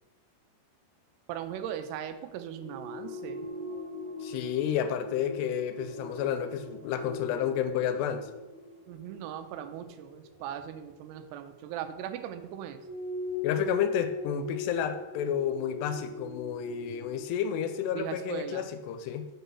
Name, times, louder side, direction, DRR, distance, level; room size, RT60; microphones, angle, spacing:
voice 1, 1.3-3.5 8.9-12.8 17.9-18.7, right 10 dB, 90° right, 9 dB, 2.7 m, -39 dB
sound 1, 2.5-11.7 12.7-17.2, left 2 dB, 70° right, 0.6 m, -40 dB
voice 2, 4.2-8.3 13.4-19.3, left 9 dB, 90° left, 9 dB, 2.7 m, -31 dB
6.2 x 4.1 x 5.4 m, 1.0 s
omnidirectional pair, 4.7 m